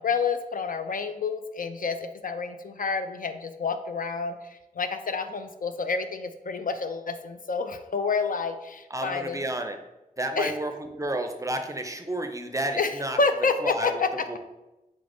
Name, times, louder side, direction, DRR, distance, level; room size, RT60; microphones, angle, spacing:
voice 1, 0.0-9.4 10.4-10.5 12.8-14.4, left 4 dB, 65° left, 8 dB, 0.4 m, -29 dB
voice 2, 8.9-9.8 10.2-13.2 13.6-14.0 14.3-14.4, right 1 dB, 20° right, 5 dB, 0.5 m, -31 dB
4.0 x 3.8 x 3.4 m, 0.98 s
wide cardioid pair, 75°, 15 cm